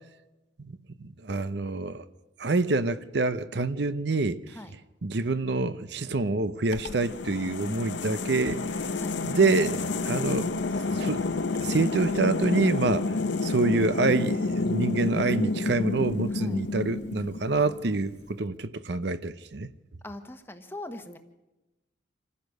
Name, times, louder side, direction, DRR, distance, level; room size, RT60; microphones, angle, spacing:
voice 1, 1.0-2.0 2.4-4.6 5.0-8.6 9.2-10.5 10.9-11.3 11.6-13.1 13.4-19.7, right 3 dB, 60° right, 0.7 m, -26 dB
sound 1, 6.7-17.8, left 3 dB, 65° left, 0.9 m, -29 dB
voice 2, 20.0-21.2, left 1 dB, 10° left, 1.2 m, -41 dB
26.5 x 15.5 x 6.5 m
head